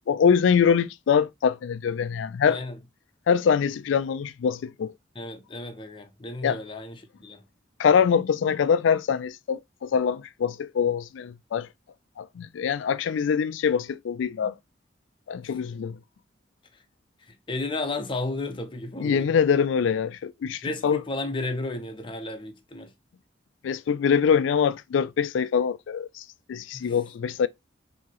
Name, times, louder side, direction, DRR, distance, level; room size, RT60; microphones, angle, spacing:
voice 1, 0.1-2.6 3.3-4.9 6.4-6.6 7.8-11.7 12.2-14.6 15.3-16.0 19.0-21.0 23.6-27.5, left 7 dB, 80° left, 0.3 m, -24 dB
voice 2, 2.4-2.8 5.1-7.4 17.3-19.4 20.6-22.9 26.7-26.9, left 2 dB, 25° left, 0.6 m, -33 dB
4.7 x 2.8 x 2.9 m
head